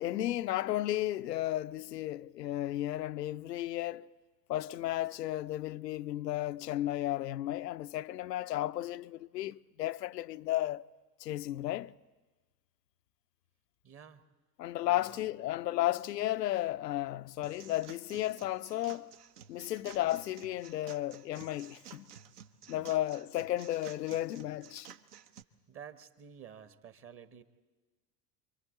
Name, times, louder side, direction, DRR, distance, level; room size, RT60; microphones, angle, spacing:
voice 1, 0.0-4.1 4.5-10.8 11.2-11.9 14.6-19.1 19.5-22.1 22.7-24.9, left 14 dB, 75° left, 0.5 m, -34 dB
voice 2, 13.8-14.2 14.8-15.3 22.6-22.9 25.7-27.4, right 8 dB, 25° right, 1.0 m, -51 dB
sound 1, 17.4-25.4, right 9 dB, 65° right, 1.0 m, -53 dB
27.5 x 23.5 x 4.2 m
figure-of-eight pair, 75°, 50 cm